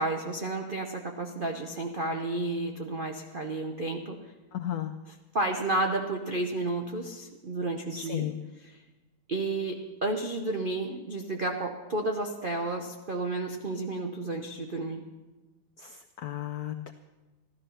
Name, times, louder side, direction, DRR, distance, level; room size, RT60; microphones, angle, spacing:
voice 1, 0.0-4.2 5.1-8.3 8.6-8.8 9.3-15.1, right 2 dB, 75° right, 3 dB, 0.4 m, -32 dB
voice 2, 4.5-4.9 7.9-8.4 15.8-16.9, left 12 dB, 80° left, 7 dB, 0.8 m, -34 dB
14.5 x 12.5 x 5.6 m, 1.2 s
omnidirectional pair, 2.3 m